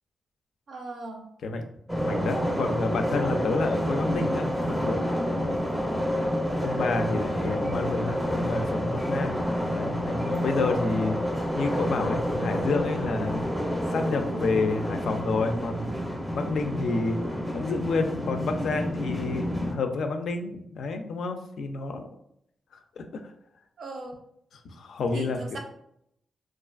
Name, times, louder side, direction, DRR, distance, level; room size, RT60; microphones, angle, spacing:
voice 1, 0.7-1.3 23.8-24.2 25.1-25.6, right 2 dB, 75° right, 2 dB, 0.5 m, -38 dB
sound 1, 1.9-19.7, equal, ahead, 0.5 m, -29 dB
voice 2, 2.0-5.6 6.6-9.4 9.7-11.2 11.5-13.4 13.9-15.9 16.3-17.2 17.5-22.0 23.0-23.2 24.6-25.4, left 3 dB, 75° left, 6 dB, 0.3 m, -29 dB
2.4 x 2.3 x 2.3 m, 0.75 s
cardioid pair, 70°, 0 cm